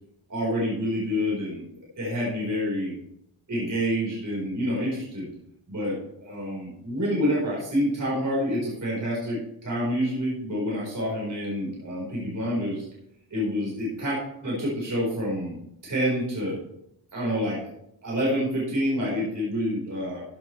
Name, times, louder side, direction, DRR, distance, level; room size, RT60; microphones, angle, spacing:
voice 1, 0.3-1.6 2.0-2.9 3.5-5.3 5.7-12.9 13.3-14.2 14.4-15.5 15.8-16.6 17.1-17.6 18.0-20.2, equal, 40° right, -6 dB, 4.3 m, -27 dB
13.5 x 8.8 x 3.2 m, 0.78 s
wide cardioid pair, 175°, 49 cm